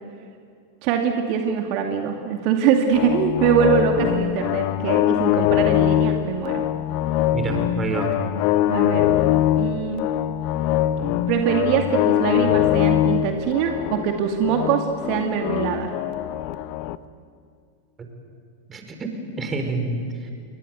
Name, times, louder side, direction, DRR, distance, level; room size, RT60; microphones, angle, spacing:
voice 1, 0.8-6.6 8.7-9.1 9.6-10.1 11.3-15.9, right 7 dB, 45° right, 3 dB, 2.3 m, -23 dB
sound 1, 2.9-17.0, left 12 dB, 45° left, 0.9 m, -22 dB
voice 2, 7.3-8.2 18.7-19.1 19.4-20.3, right 3 dB, 20° right, 5 dB, 5.1 m, -27 dB
28.5 x 23.5 x 8.3 m, 2.3 s
figure-of-eight pair, 90°, 0 cm